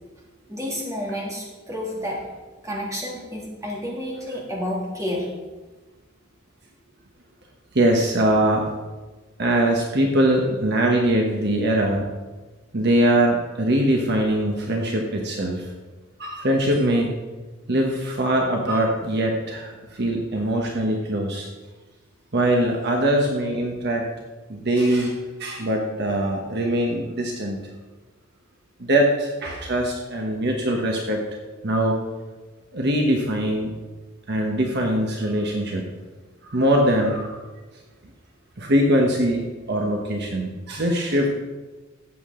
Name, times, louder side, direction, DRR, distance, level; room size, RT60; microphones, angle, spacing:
voice 1, 0.5-2.2 2.6-5.3, equal, 15° right, -4 dB, 2.5 m, -30 dB
voice 2, 7.7-8.7 9.4-12.1 12.7-15.7 16.2-17.1 17.7-21.5 22.3-24.1 24.5-27.6 28.8-31.2 31.6-32.0 32.7-33.7 34.3-35.9 36.4-37.4 38.6-41.3, right 1 dB, 55° right, 1 dB, 1.2 m, -22 dB
14.0 x 8.4 x 3.8 m, 1.2 s
head